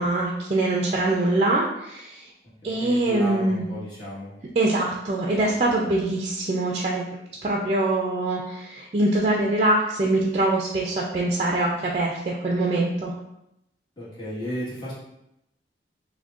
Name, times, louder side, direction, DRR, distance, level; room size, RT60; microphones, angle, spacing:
voice 1, 0.0-2.2 2.6-3.6 4.6-7.0 7.4-13.1, right 2 dB, 40° right, -2 dB, 0.4 m, -23 dB
voice 2, 2.6-4.3 14.0-14.9, equal, 25° left, -9 dB, 1.4 m, -34 dB
6.0 x 2.2 x 2.4 m, 0.84 s
head